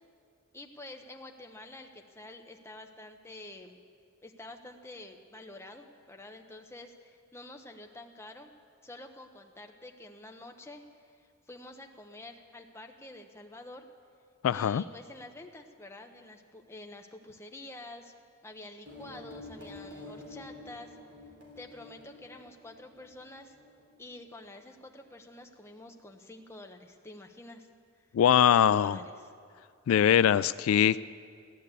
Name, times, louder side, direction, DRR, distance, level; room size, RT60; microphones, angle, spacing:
voice 1, 0.5-3.8 4.2-8.5 8.8-11.2 11.5-13.9 14.5-18.1 18.4-21.0 21.6-23.5 24.0-27.7 28.5-29.3, left 2 dB, 15° left, 3 dB, 0.9 m, -48 dB
voice 2, 14.4-14.8 28.1-29.0 29.9-31.2, left 9 dB, 85° left, 17 dB, 0.3 m, -22 dB
sound 1, 18.8-24.2, left 1 dB, 55° right, 3.0 m, -49 dB
15.5 x 10.5 x 8.2 m, 2.2 s
head